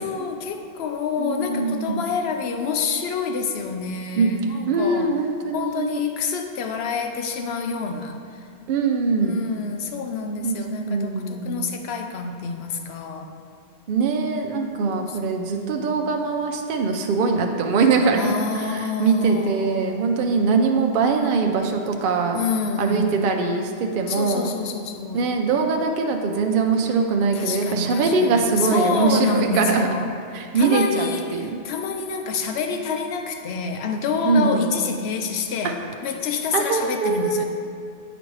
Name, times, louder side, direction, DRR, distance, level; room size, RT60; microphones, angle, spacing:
voice 1, 0.0-5.1 5.5-8.5 9.2-13.3 14.5-15.2 15.6-16.0 18.1-20.2 22.3-23.3 24.1-25.2 27.3-30.2 30.5-37.4, left 5 dB, 75° left, 5 dB, 0.8 m, -28 dB
voice 2, 1.2-2.1 4.2-4.3 4.7-6.0 8.7-9.4 10.4-10.6 10.9-11.7 13.9-22.4 22.8-24.5 25.1-29.9 30.3-31.6 34.3-34.7 35.6-35.7 36.5-37.4, right 4 dB, 60° right, 3 dB, 0.7 m, -22 dB
8.9 x 5.1 x 3.1 m, 2.4 s
omnidirectional pair, 1.1 m